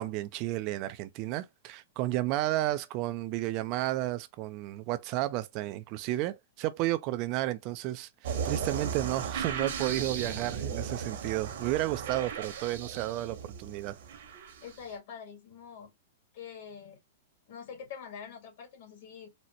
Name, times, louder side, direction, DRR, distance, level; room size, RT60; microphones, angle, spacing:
voice 1, 0.0-14.0, right 15 dB, 40° right, 0.3 m, -32 dB
sound 1, 8.2-14.8, right 7 dB, 65° right, 1.1 m, -36 dB
voice 2, 14.6-15.9 16.3-17.0 17.5-19.3, left 7 dB, 60° left, 1.9 m, -45 dB
4.0 x 2.1 x 2.8 m
hypercardioid pair, 145°, 0 cm